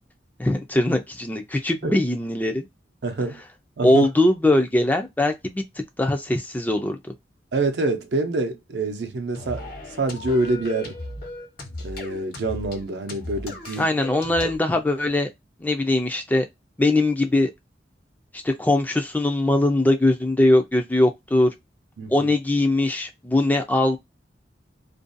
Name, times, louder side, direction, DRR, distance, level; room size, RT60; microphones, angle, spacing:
voice 1, 0.4-2.7 3.8-5.6 6.0-7.1 13.8-15.3 15.6-16.5 16.8-17.5 18.3-21.5 22.1-24.0, left 1 dB, 10° left, 0.4 m, -21 dB
voice 2, 3.0-3.4 3.8-4.1 7.5-9.7 10.0-11.0 11.8-13.8 22.0-22.3, right 2 dB, 70° right, 0.6 m, -26 dB
sound 1, 9.3-14.6, left 2 dB, 55° left, 0.9 m, -36 dB
2.5 x 2.2 x 2.5 m
head